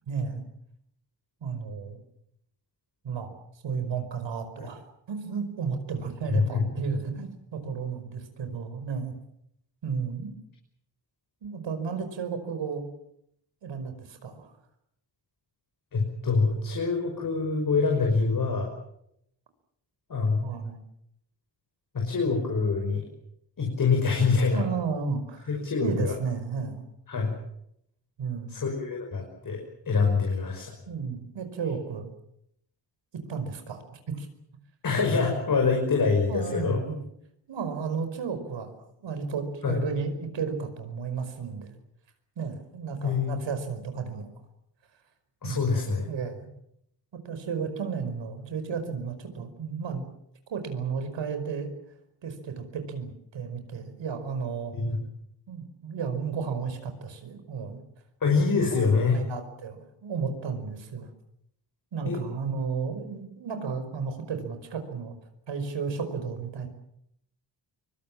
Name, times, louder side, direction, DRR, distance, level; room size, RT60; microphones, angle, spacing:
voice 1, 0.1-0.4 1.4-2.0 3.0-3.3 3.6-4.8 5.1-9.1 9.8-10.3 11.4-12.9 13.6-14.5 20.4-20.8 24.5-25.5 25.8-26.8 28.2-28.6 30.9-32.1 33.3-34.3 35.2-35.4 36.3-37.0 37.5-41.7 42.4-44.3 45.4-46.5 47.3-50.0 50.5-51.7 52.2-54.8 55.5-57.8 58.7-61.1 61.9-65.1 65.5-66.7, right 5 dB, 90° right, 8 dB, 5.3 m, -33 dB
voice 2, 6.3-6.8 15.9-18.7 20.1-20.5 21.9-23.0 23.6-24.6 25.5-26.1 27.1-27.3 28.5-29.6 29.9-30.7 34.8-36.8 39.6-39.8 43.0-43.4 45.4-46.1 54.7-55.0 58.2-59.2 62.1-62.2, left 4 dB, 50° left, 2 dB, 5.7 m, -25 dB
25.0 x 24.0 x 7.4 m, 0.75 s
wide cardioid pair, 165°, 43 cm